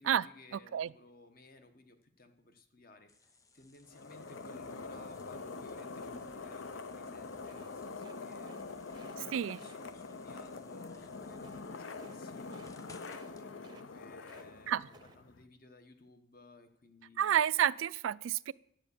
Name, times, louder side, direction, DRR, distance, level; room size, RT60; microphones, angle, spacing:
voice 1, 0.0-8.6 9.2-12.9 13.2-17.4, left 2 dB, 45° left, 1.1 m, -59 dB
sound 1, 3.1-13.5, left 2 dB, 15° left, 0.6 m, -62 dB
sound 2, 3.9-15.4, left 4 dB, 70° left, 0.7 m, -45 dB
sound 3, 7.4-8.6 8.9-9.2 9.5-9.8 11.3-11.6 11.9-12.2 12.4-12.7 13.0-13.3 13.6-14.5 14.8-15.2, right 2 dB, 20° right, 0.7 m, -58 dB
voice 2, 9.2-9.6 14.7-14.9 17.2-18.5, right 10 dB, 80° right, 0.3 m, -30 dB
10.0 x 7.5 x 6.9 m
head